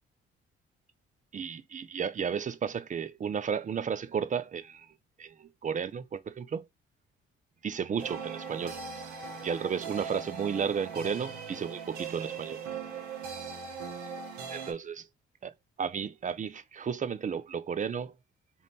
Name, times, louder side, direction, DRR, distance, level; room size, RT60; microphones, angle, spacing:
voice 1, 1.3-6.7 7.6-8.8 9.4-12.6 14.5-15.0 15.4-15.5 15.8-18.2, right 7 dB, 25° right, 0.4 m, -33 dB
sound 1, 8.0-14.7, right 6 dB, 70° right, 0.9 m, -40 dB
2.7 x 2.5 x 3.5 m
hypercardioid pair, 45°, 30 cm